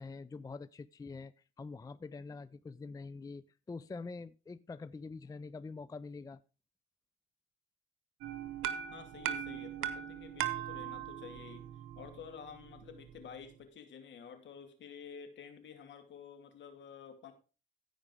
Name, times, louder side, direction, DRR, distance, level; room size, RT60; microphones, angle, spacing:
voice 1, 0.0-6.4, left 4 dB, 20° left, 16 dB, 0.4 m, -45 dB
sound 1, 8.2-13.5, right 10 dB, 85° right, 1.1 m, -40 dB
voice 2, 8.9-11.7 11.9-17.3, left 7 dB, 65° left, 7 dB, 2.4 m, -50 dB
15.5 x 5.2 x 4.8 m, 0.34 s
cardioid pair, 90°, 20 cm